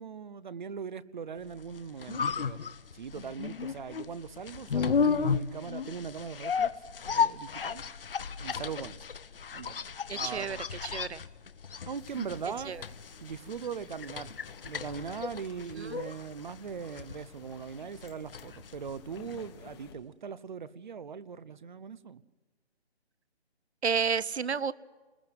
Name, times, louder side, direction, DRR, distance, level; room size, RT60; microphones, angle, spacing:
voice 1, 0.0-2.6 2.9-6.7 7.1-7.8 8.4-9.0 9.5-9.7 10.1-10.6 11.9-12.7 13.2-14.3 14.6-22.2, right 6 dB, 45° right, 18 dB, 0.9 m, -40 dB
sound 1, 1.6-19.6 19.9-20.0, left 6 dB, 55° left, 1.0 m, -34 dB
voice 2, 10.1-10.6 10.8-11.2 12.7-12.8 15.8-16.0 23.8-24.7, right 6 dB, 75° right, 19 dB, 0.9 m, -31 dB
sound 2, 11.9-19.9, left 6 dB, 25° left, 1.3 m, -54 dB
28.0 x 21.0 x 7.8 m, 1.3 s
figure-of-eight pair, 155°, 33 cm